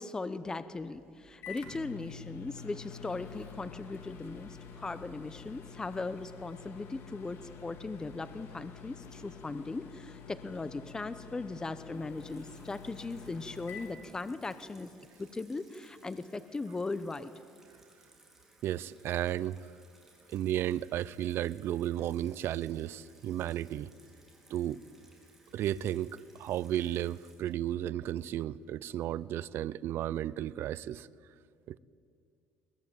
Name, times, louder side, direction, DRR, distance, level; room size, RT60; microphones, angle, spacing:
voice 1, 0.0-14.9 15.2-17.3, left 3 dB, 15° left, 13 dB, 0.8 m, -38 dB
Microwave oven, 0.7-14.8, left 6 dB, 60° left, 3.4 m, -48 dB
Water tap faucet / Sink (filling or washing), 11.9-28.6, right 2 dB, 5° right, 4.7 m, -63 dB
voice 2, 18.6-19.7 20.3-23.9 24.5-24.8 25.5-31.1 31.7-31.8, right 12 dB, 60° right, 17 dB, 0.6 m, -33 dB
22.0 x 20.5 x 9.1 m, 2.4 s
cardioid pair, 130°, 5 cm